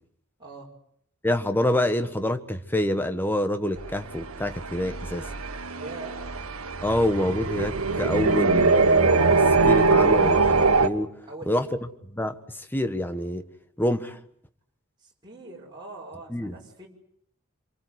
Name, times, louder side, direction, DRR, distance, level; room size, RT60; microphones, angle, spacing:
voice 1, 0.4-0.7 5.7-6.2 11.3-11.6 15.0-16.9, right 3 dB, 20° right, 5.8 m, -42 dB
voice 2, 1.2-5.3 6.8-11.1 11.5-13.5 13.8-14.2 16.3-16.5, left 1 dB, 10° left, 1.4 m, -27 dB
sound 1, 3.8-10.9, right 3 dB, 85° right, 1.8 m, -22 dB
27.5 x 23.5 x 8.2 m
head